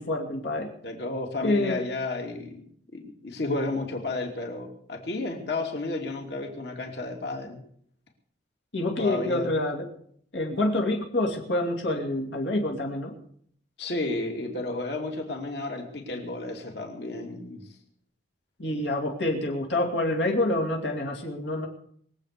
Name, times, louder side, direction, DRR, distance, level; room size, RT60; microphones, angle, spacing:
voice 1, 0.0-0.7 1.4-1.8 8.7-9.9 10.3-13.1 18.6-21.7, left 1 dB, 80° left, -1 dB, 2.6 m, -27 dB
voice 2, 0.8-2.7 2.9-7.6 9.0-9.5 13.8-17.6, left 2 dB, 65° left, 2 dB, 2.8 m, -32 dB
22.0 x 8.2 x 6.7 m, 0.64 s
head